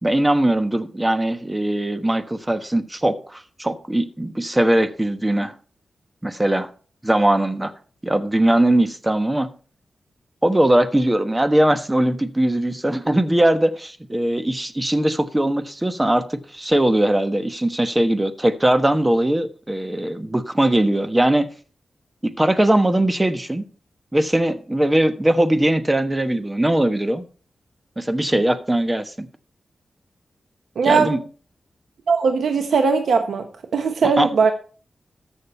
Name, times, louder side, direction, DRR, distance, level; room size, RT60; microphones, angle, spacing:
voice 1, 0.0-5.5 6.2-6.7 7.0-7.7 8.0-9.5 10.4-21.5 22.2-23.6 24.1-27.2 28.0-29.3 30.8-31.2 34.0-34.3, right 1 dB, 15° right, 1.2 m, -20 dB
voice 2, 30.8-31.2 32.1-33.5 33.7-34.5, right 5 dB, 90° right, 1.0 m, -19 dB
14.0 x 6.5 x 4.3 m
cardioid pair, 75°, 0 cm